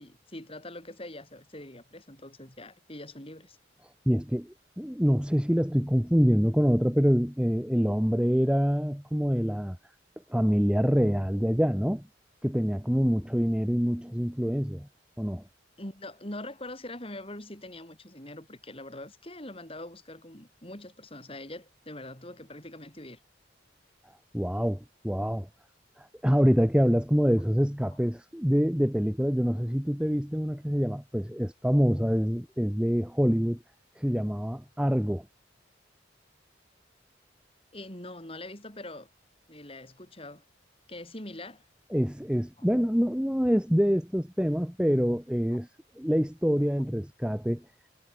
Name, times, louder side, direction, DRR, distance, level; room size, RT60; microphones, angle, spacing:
voice 1, 0.0-3.6 15.8-23.2 37.7-39.1 39.5-40.4 40.9-41.6, left 1 dB, 30° left, 5.6 m, -43 dB
voice 2, 4.0-9.8 10.3-12.0 12.4-14.9 15.2-15.4 24.3-25.5 26.0-33.6 34.0-35.2 41.9-45.7 46.0-47.6, equal, 5° right, 1.6 m, -25 dB
head